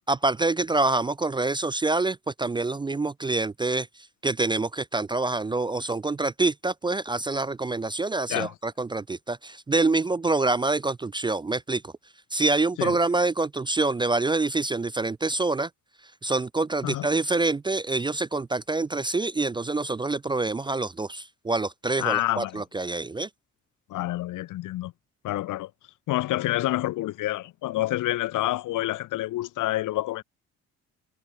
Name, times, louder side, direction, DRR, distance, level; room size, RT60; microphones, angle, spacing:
voice 1, 0.1-3.9 4.2-11.9 12.3-15.7 16.2-23.3, right 3 dB, 15° right, 0.4 m, -26 dB
voice 2, 22.0-22.6 23.9-24.9 25.2-25.7 26.1-30.2, left 16 dB, 85° left, 1.9 m, -28 dB
cardioid pair, 90°, 30 cm